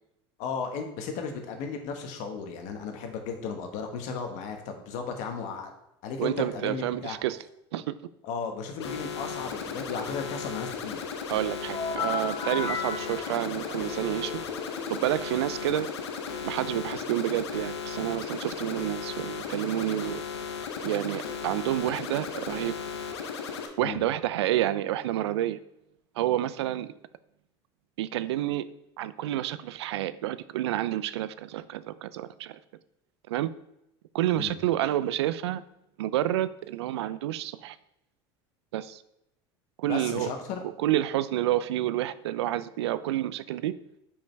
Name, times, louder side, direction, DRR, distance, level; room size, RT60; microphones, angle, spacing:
voice 1, 0.4-5.7 6.0-7.2 8.2-11.0 23.8-24.0 34.3-34.6 39.8-40.6, left 5 dB, 65° left, 4 dB, 1.4 m, -35 dB
voice 2, 6.2-7.4 7.7-7.9 11.3-14.4 14.9-15.9 16.4-20.2 20.8-22.7 23.8-25.6 26.2-26.9 28.0-28.7 29.0-32.6 33.3-33.5 34.1-35.6 36.0-37.8 38.7-39.0 39.8-40.3 40.8-43.7, right 13 dB, 85° right, 15 dB, 0.4 m, -29 dB
sound 1, 8.8-23.7, left 6 dB, 90° left, 0.9 m, -36 dB
sound 2, 11.7-15.3, left 6 dB, 25° left, 0.7 m, -35 dB
5.4 x 5.0 x 4.6 m, 0.85 s
hypercardioid pair, 90°, 14 cm